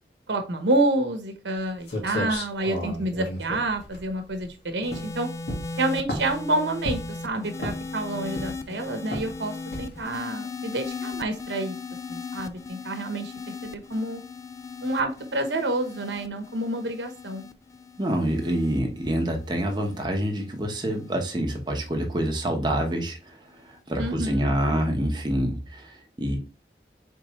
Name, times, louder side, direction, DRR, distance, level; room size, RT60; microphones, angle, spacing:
voice 1, 0.3-5.3 5.8-11.7 12.1-14.2 14.8-17.5 24.0-24.5, right 2 dB, 90° right, 0.9 m, -28 dB
sound 1, 1.6-1.7 1.9-4.5 4.9-5.1 5.5-6.4 6.9-7.2 7.6-8.0 8.3-8.7 9.1-9.3 9.7-10.1, left 1 dB, 80° left, 1.6 m, -32 dB
sound 2, 4.8-21.3 22.2-22.6, left 4 dB, 15° left, 0.3 m, -38 dB
voice 2, 18.0-23.4 23.7-26.4, right 1 dB, 25° right, 0.9 m, -26 dB
4.6 x 3.5 x 3.0 m
head